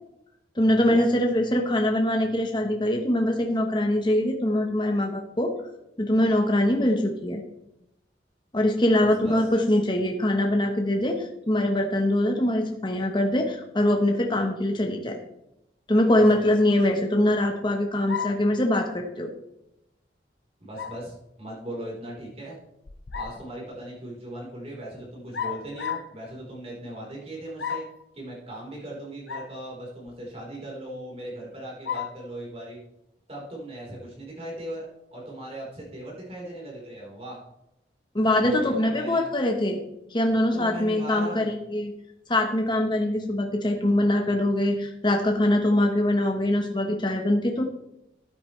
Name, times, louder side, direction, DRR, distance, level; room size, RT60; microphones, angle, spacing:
voice 1, 0.6-5.5 6.0-7.4 8.5-15.2 15.9-19.3 38.1-39.8 40.1-41.5 41.7-41.9 42.3-47.6, left 1 dB, 25° left, 2 dB, 1.1 m, -23 dB
voice 2, 8.9-9.5 16.1-16.5 20.6-22.6 23.1-27.9 28.1-32.8 33.3-37.4 38.4-39.3 40.5-41.5, right 1 dB, 35° right, -3 dB, 4.0 m, -38 dB
sound 1, 18.1-18.5 20.8-21.1 22.9-23.5 25.3-26.1 27.6-28.0 29.3-29.5 30.1-30.2 31.9-32.2, left 7 dB, 80° left, 0.8 m, -33 dB
14.0 x 8.6 x 3.2 m, 0.84 s
head